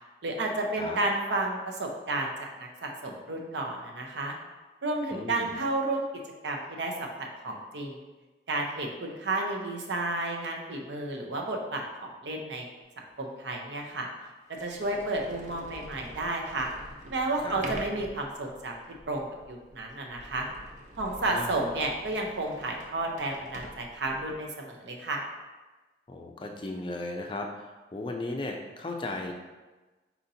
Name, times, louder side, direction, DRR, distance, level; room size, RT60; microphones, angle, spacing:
voice 1, 0.2-4.3 4.8-6.0 6.4-8.0 8.5-12.7 13.2-14.1 14.6-16.7 17.1-18.8 19.1-20.5 21.0-25.2, right 2 dB, 85° right, 1 dB, 0.7 m, -32 dB
voice 2, 5.1-5.5 17.4-17.7 21.2-21.6 26.1-29.3, left 2 dB, 30° left, 2 dB, 0.4 m, -36 dB
Sliding door, 13.1-13.2 13.9-14.0 14.5-24.4, right 1 dB, 40° right, 0.5 m, -45 dB
4.3 x 4.1 x 2.7 m, 1.2 s
head